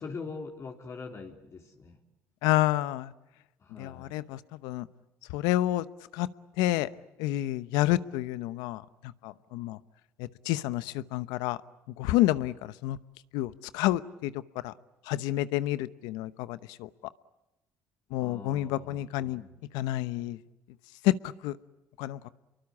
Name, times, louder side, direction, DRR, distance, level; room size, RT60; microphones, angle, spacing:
voice 1, 0.0-2.0 3.6-4.2 18.2-19.5, left 4 dB, 45° left, 2 dB, 3.6 m, -43 dB
voice 2, 2.4-3.1 3.8-4.9 5.3-5.8 6.1-6.3 6.6-6.9 7.2-9.8 10.2-11.6 12.0-13.0 13.3-14.3 14.6-14.7 15.1-16.9 18.1-19.4 19.7-20.4 21.0-21.6 22.0-22.2, left 15 dB, 85° left, 15 dB, 0.9 m, -29 dB
28.0 x 23.5 x 8.6 m, 0.98 s
supercardioid pair, 70°, 7 cm